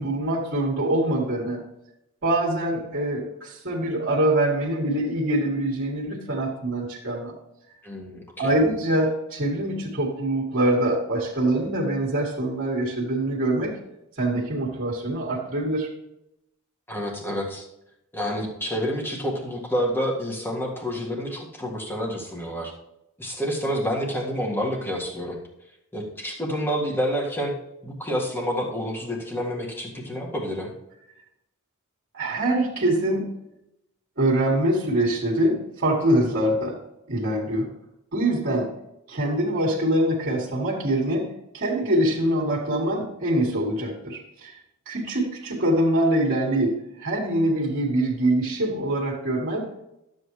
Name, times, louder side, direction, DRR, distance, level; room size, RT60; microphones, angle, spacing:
voice 1, 0.0-1.6 2.2-7.4 8.4-13.8 14.2-15.9 32.1-33.3 34.2-36.8 37.1-37.7 38.1-38.7 39.1-44.5 44.9-49.7, right 1 dB, 55° right, -4 dB, 1.9 m, -24 dB
voice 2, 7.8-8.5 16.9-17.6 18.1-22.7 23.2-25.4 25.9-27.5 27.8-30.7, equal, 10° left, -2 dB, 1.8 m, -28 dB
12.0 x 7.9 x 3.2 m, 0.85 s
head